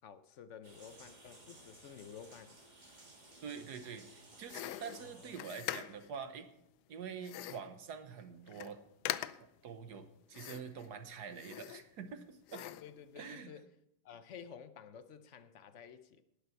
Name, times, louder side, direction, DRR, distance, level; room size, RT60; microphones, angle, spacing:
voice 1, 0.0-2.6 4.9-5.5 12.5-13.7 14.0-16.2, left 7 dB, 60° left, 0.9 m, -52 dB
sound 1, 0.6-6.1, right 2 dB, 25° right, 2.2 m, -58 dB
voice 2, 3.4-6.5 6.9-8.8 9.4-12.7 13.2-13.5, right 6 dB, 75° right, 1.6 m, -46 dB
sound 2, 4.5-6.2 7.2-7.7 8.2-8.3 8.5-8.7 9.0-9.6 10.3-10.9 11.3-12.1 12.5-12.9, left 13 dB, 85° left, 1.2 m, -42 dB
19.0 x 6.8 x 4.6 m
omnidirectional pair, 1.7 m